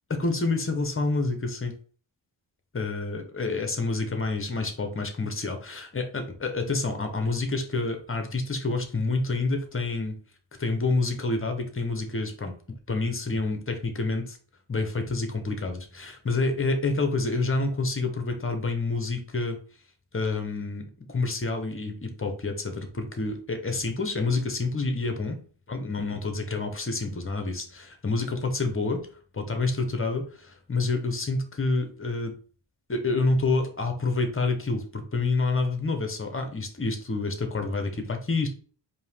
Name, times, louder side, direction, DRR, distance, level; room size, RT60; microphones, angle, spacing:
voice 1, 0.1-1.7 2.7-10.2 10.6-12.5 12.9-14.4 14.7-19.6 20.1-20.8 21.1-25.4 25.7-29.0 29.3-32.3 32.9-38.5, left 3 dB, 30° left, 6 dB, 0.9 m, -28 dB
4.4 x 2.8 x 3.5 m, 0.42 s
wide cardioid pair, 100°, 44 cm